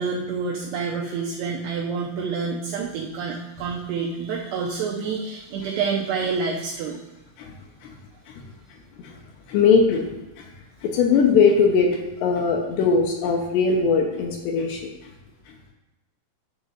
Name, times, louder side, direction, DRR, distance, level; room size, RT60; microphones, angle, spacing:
voice 1, 0.0-7.0, right 5 dB, 85° right, -2 dB, 2.3 m, -28 dB
voice 2, 9.5-10.5 10.8-14.9 15.5-15.6, left 5 dB, 75° left, 2 dB, 2.6 m, -21 dB
10.5 x 3.6 x 6.5 m, 1.0 s
omnidirectional pair, 5.7 m